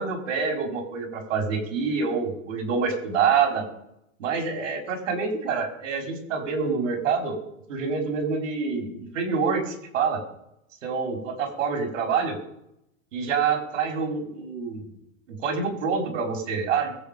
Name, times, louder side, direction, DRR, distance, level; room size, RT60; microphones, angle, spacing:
voice 1, 0.0-3.6 4.2-7.4 7.7-10.2 10.8-12.4 13.1-14.8 15.4-17.0, right 5 dB, 80° right, 3 dB, 5.2 m, -26 dB
23.0 x 7.8 x 5.4 m, 0.79 s
supercardioid pair, 140°, 37 cm